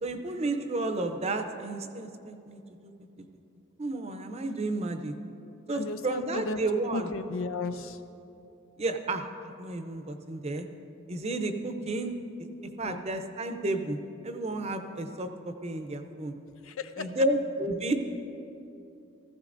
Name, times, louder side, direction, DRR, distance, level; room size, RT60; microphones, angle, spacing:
voice 1, 0.0-2.9 3.8-5.1 5.7-7.1 8.8-10.7 11.1-12.1 12.8-14.0 14.2-16.3 17.0-17.9, right 2 dB, 30° right, 7 dB, 0.6 m, -32 dB
voice 2, 5.7-6.6 6.9-8.0 12.8-13.0 16.6-17.2, left 3 dB, 90° left, 9 dB, 0.6 m, -34 dB
16.5 x 14.5 x 2.6 m, 2.8 s
head